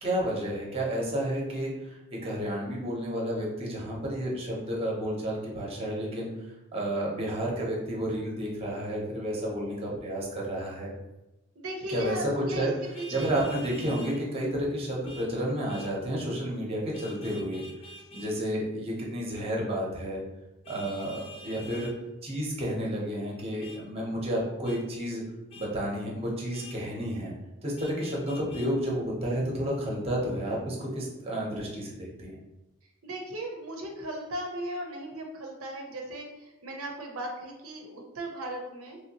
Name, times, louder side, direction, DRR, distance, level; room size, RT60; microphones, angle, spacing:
voice 1, 0.0-6.3 6.7-10.9 11.9-12.7 13.1-17.6 18.1-20.2 20.7-21.9 22.2-25.2 25.5-27.3 27.6-32.4, equal, 30° right, -3 dB, 0.7 m, -31 dB
voice 2, 11.6-12.7 13.0-13.3 33.0-39.0, right 1 dB, 80° right, 1 dB, 0.6 m, -37 dB
Vehicle horn car horn honking, 12.9-14.2 15.0-15.3 15.7-15.9 16.9-18.3 20.6-21.9 23.6-23.8 24.6-24.8 25.5-25.7 26.5-26.8 27.8-28.7, left 1 dB, 30° left, 0.6 m, -46 dB
3.2 x 2.7 x 2.8 m, 1.0 s
head